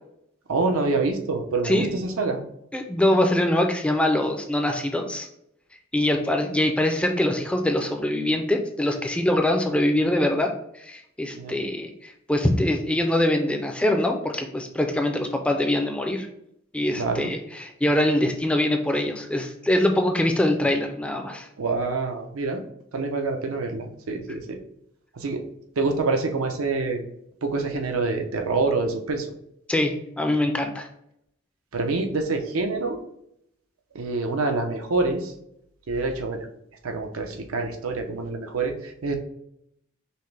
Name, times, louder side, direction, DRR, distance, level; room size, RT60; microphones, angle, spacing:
voice 1, 0.5-2.4 11.4-11.5 17.0-17.3 21.6-22.6 22.9-24.6 25.2-25.4 25.8-27.0 27.4-29.3 31.7-33.0 33.9-35.3 35.9-36.5 36.8-39.2, right 3 dB, 90° right, 4 dB, 0.6 m, -26 dB
voice 2, 2.7-5.3 5.9-10.5 10.8-16.3 16.7-21.5 29.7-30.9, left 1 dB, 5° left, 4 dB, 0.3 m, -23 dB
5.4 x 2.0 x 3.2 m, 0.77 s
head